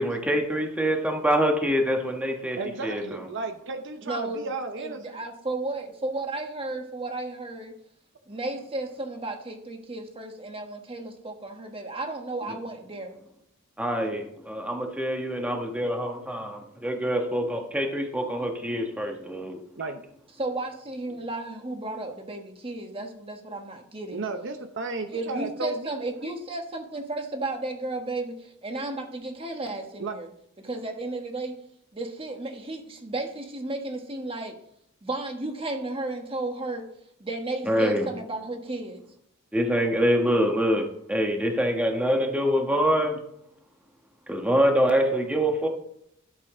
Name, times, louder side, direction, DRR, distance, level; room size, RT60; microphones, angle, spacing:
voice 1, 0.0-2.6 2.8-3.2 13.8-19.6 37.7-38.1 39.5-43.2 44.3-45.7, equal, 5° right, 2 dB, 1.2 m, -25 dB
voice 2, 2.6-5.2 19.8-20.0 24.1-26.0 30.0-30.2, right 3 dB, 60° right, 7 dB, 0.8 m, -33 dB
voice 3, 4.1-4.5 4.8-7.8 8.3-13.2 20.4-24.2 25.1-30.3 30.6-31.6 31.9-34.6 35.0-36.9 37.2-39.0, right 2 dB, 25° right, 4 dB, 1.4 m, -33 dB
12.0 x 6.8 x 3.8 m, 0.73 s
head